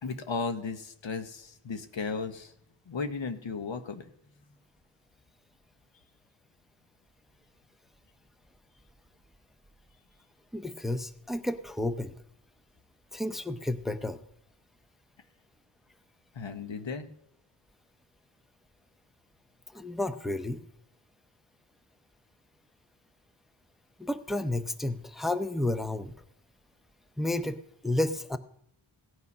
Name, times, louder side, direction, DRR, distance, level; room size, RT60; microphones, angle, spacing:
voice 1, 0.0-2.5 2.9-4.1 16.3-17.1, left 4 dB, 65° left, 8 dB, 1.2 m, -35 dB
voice 2, 10.5-12.2 13.1-14.2 19.7-20.6 24.0-26.1 27.2-27.6 27.8-28.4, left 1 dB, ahead, 11 dB, 0.6 m, -31 dB
17.0 x 8.6 x 5.4 m, 0.73 s
wide cardioid pair, 95°, 49 cm